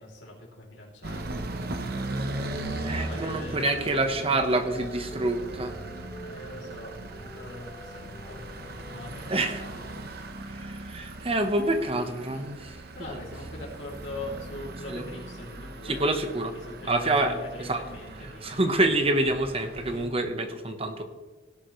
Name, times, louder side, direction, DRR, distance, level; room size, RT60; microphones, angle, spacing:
voice 1, 0.0-1.4 2.9-4.8 6.2-10.1 12.3-12.4 12.9-16.0 16.5-18.7 19.8-20.2, left 1 dB, 75° left, -3 dB, 3.1 m, -42 dB
sound 1, 1.0-20.1, right 2 dB, 55° right, 1.0 m, -39 dB
sound 2, 2.4-9.3, equal, 35° left, 4.4 m, -46 dB
voice 2, 2.8-5.8 9.3-9.6 10.5-12.7 13.0-13.2 14.9-15.0 15.8-16.5 16.9-17.3 17.6-17.8 18.4-21.0, right 2 dB, 30° right, 7 dB, 1.2 m, -27 dB
17.5 x 11.0 x 3.2 m, 1.2 s
head